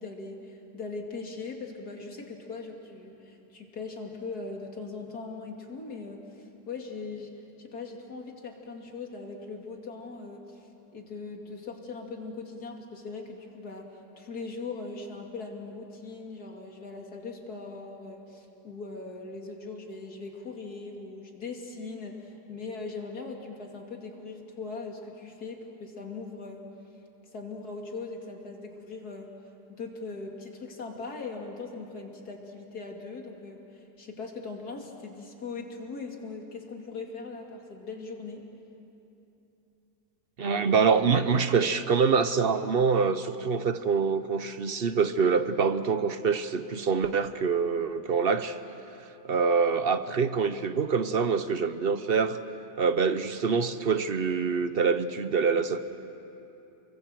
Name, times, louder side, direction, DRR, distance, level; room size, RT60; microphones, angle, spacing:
voice 1, 0.0-26.7 27.3-29.3 29.7-38.4, left 4 dB, 70° left, 2 dB, 3.0 m, -40 dB
voice 2, 40.4-48.6 49.2-52.4 52.8-55.8, right 5 dB, 50° right, 11 dB, 0.7 m, -25 dB
29.5 x 23.0 x 7.6 m, 2.9 s
omnidirectional pair, 1.7 m